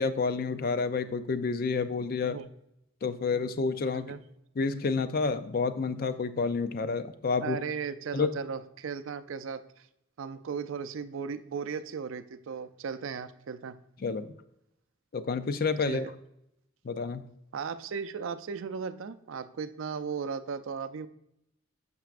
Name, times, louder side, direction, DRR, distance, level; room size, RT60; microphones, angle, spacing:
voice 1, 0.0-2.4 3.0-4.1 4.6-7.6 8.1-8.3 14.0-14.3 15.1-16.1 16.8-17.2, left 4 dB, 45° left, 12 dB, 0.4 m, -29 dB
voice 2, 7.4-9.9 10.2-13.8 15.9-16.1 17.5-21.1, right 6 dB, 65° right, 12 dB, 0.4 m, -36 dB
9.0 x 6.1 x 2.4 m, 0.80 s
head